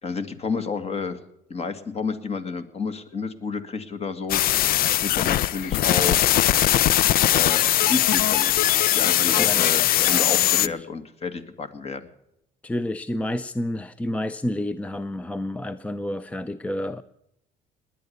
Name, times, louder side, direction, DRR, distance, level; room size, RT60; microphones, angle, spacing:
voice 1, 0.0-1.2 1.5-4.4 5.0-6.2 7.3-8.7 8.9-12.1, left 4 dB, 40° left, 9 dB, 2.0 m, -30 dB
sound 1, 4.3-10.7, left 13 dB, 60° left, 0.5 m, -20 dB
voice 2, 9.4-10.9 12.6-17.0, left 1 dB, 10° left, 14 dB, 0.5 m, -30 dB
19.5 x 10.0 x 6.8 m, 0.80 s
cardioid pair, 110°, 17 cm